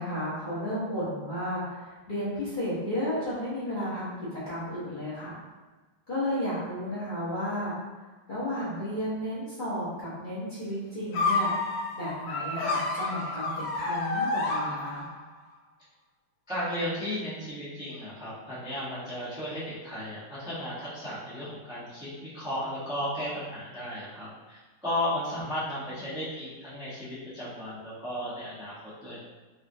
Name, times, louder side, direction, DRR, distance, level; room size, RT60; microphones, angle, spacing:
voice 1, 0.0-5.4 6.1-7.7 8.3-11.5 11.9-15.0 25.3-25.4, equal, 40° left, -12 dB, 0.7 m, -33 dB
sound 1, 11.1-15.3, left 3 dB, 70° left, 1.0 m, -29 dB
voice 2, 16.5-29.2, left 1 dB, 5° right, -11 dB, 0.4 m, -34 dB
4.2 x 2.4 x 2.6 m, 1.2 s
omnidirectional pair, 2.2 m